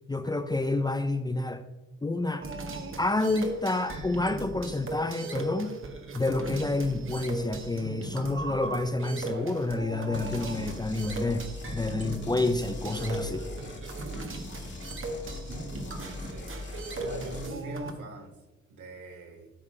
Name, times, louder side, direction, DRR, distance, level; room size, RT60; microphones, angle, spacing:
voice 1, 0.1-1.6 2.0-2.5 3.0-5.7 6.1-13.5, left 2 dB, 15° left, 0.7 m, -29 dB
sound 1, 2.4-17.9, right 2 dB, 45° right, 1.7 m, -38 dB
sound 2, 10.1-17.5, left 2 dB, 35° left, 2.2 m, -41 dB
voice 2, 16.2-16.6 16.9-18.4 18.7-19.5, right 2 dB, 70° right, 3.5 m, -42 dB
13.0 x 5.0 x 5.4 m
cardioid pair, 90°, 30 cm